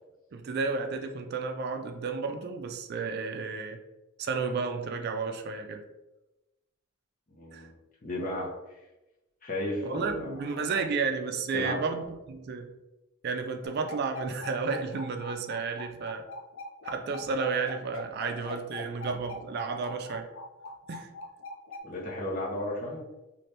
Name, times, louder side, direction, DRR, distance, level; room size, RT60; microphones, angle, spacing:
voice 1, 0.3-3.8 4.2-5.8 7.5-7.7 9.8-12.7 13.2-16.3 16.8-20.3 20.9-21.1, right 4 dB, 50° right, 6 dB, 0.3 m, -32 dB
voice 2, 7.3-7.7 8.0-8.5 9.4-10.7 11.5-11.8 21.8-23.0, left 1 dB, 40° left, -4 dB, 0.8 m, -34 dB
sound 1, 13.6-21.8, left 3 dB, 70° left, 0.5 m, -42 dB
3.2 x 2.5 x 2.8 m, 1.0 s
head